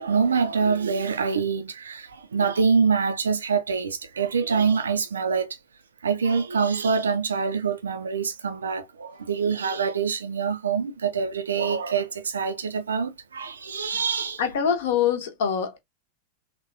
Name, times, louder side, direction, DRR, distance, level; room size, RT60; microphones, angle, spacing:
voice 1, 0.0-5.6 6.0-14.4, right 5 dB, 70° right, 0.4 m, -25 dB
voice 2, 14.4-15.8, left 7 dB, 55° left, 0.8 m, -24 dB
3.4 x 2.2 x 2.6 m
figure-of-eight pair, 90°, 0 cm